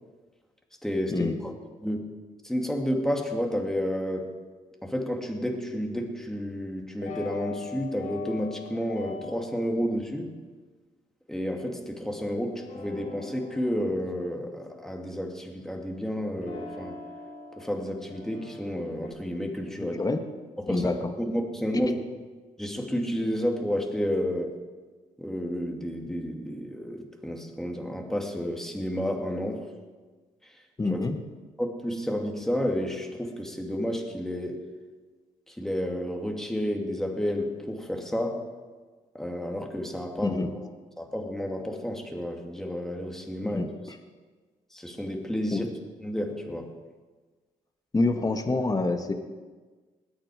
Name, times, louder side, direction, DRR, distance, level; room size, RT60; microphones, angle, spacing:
voice 1, 0.8-1.5 1.8-2.0 2.4-4.3 4.8-10.3 11.3-17.0 17.6-20.0 20.6-20.9 21.2-22.0 22.6-24.6 25.2-29.6 30.4-30.5 30.9-31.0 31.6-34.6 35.5-38.4 39.1-40.7 41.0-43.6 44.7-45.7 46.0-46.7, equal, 5° left, 2 dB, 2.4 m, -31 dB
sound 1, 7.0-9.8 12.4-15.9 16.4-19.1, left 5 dB, 85° left, 3.8 m, -43 dB
voice 2, 19.8-20.2 20.7-21.0 30.8-31.2 40.2-40.5 43.4-43.7 45.5-45.7 47.9-49.1, left 3 dB, 25° left, 6 dB, 1.5 m, -26 dB
20.5 x 8.9 x 5.0 m, 1.4 s
cardioid pair, 70°, 14 cm